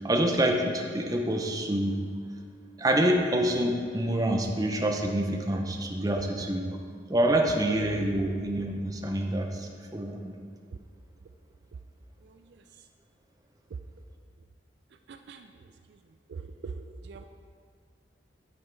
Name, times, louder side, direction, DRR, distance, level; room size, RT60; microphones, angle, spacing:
voice 1, 0.0-2.0 2.8-6.6 7.1-10.3, right 1 dB, 20° right, 2 dB, 0.7 m, -27 dB
voice 2, 6.1-6.4 10.7-10.8 12.2-12.6 15.1-16.0 16.3-17.2, right 4 dB, 65° right, 7 dB, 0.4 m, -43 dB
8.0 x 5.5 x 4.6 m, 2.2 s
head